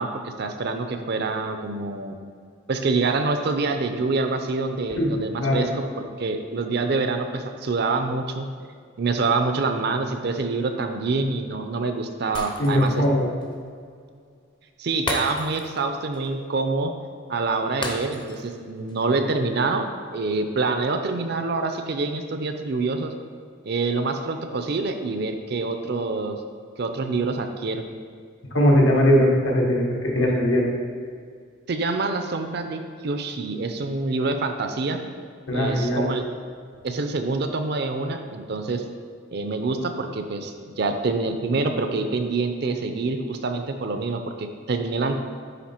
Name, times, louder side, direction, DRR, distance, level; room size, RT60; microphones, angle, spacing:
voice 1, 0.0-2.2 2.7-8.5 9.0-13.0 14.8-16.9 17.3-23.1 23.6-26.4 26.8-27.8 31.7-35.0 35.5-36.2 36.8-38.8 39.3-45.2, right 3 dB, 55° right, 6 dB, 0.5 m, -26 dB
Shatter, 12.3-13.0 13.4-13.5 15.1-15.8 16.1-16.3 17.8-18.5 18.9-19.0, left 2 dB, 25° left, 0.6 m, -32 dB
voice 2, 12.6-13.3 28.5-30.7 35.5-36.1, equal, 80° left, -2 dB, 1.3 m, -20 dB
9.3 x 3.3 x 4.3 m, 2.1 s
head